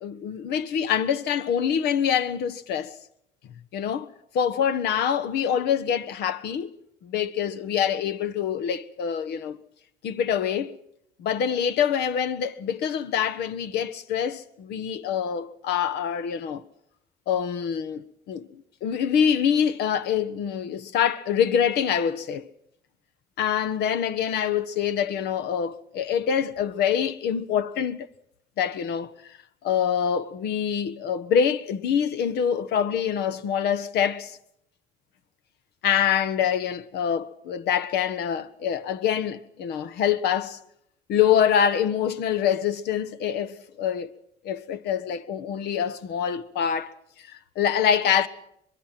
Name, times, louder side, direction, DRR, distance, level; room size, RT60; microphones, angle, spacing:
voice 1, 0.0-2.9 3.7-4.1 4.3-6.7 7.0-9.6 10.0-10.7 11.2-16.6 17.3-18.5 18.8-22.5 23.4-28.1 28.6-29.1 29.6-34.4 35.8-40.6 41.1-44.1 44.4-46.9 47.3-48.3, left 8 dB, 75° left, 1.3 m, -25 dB
25.0 x 22.0 x 6.0 m
cardioid pair, 110°, 17 cm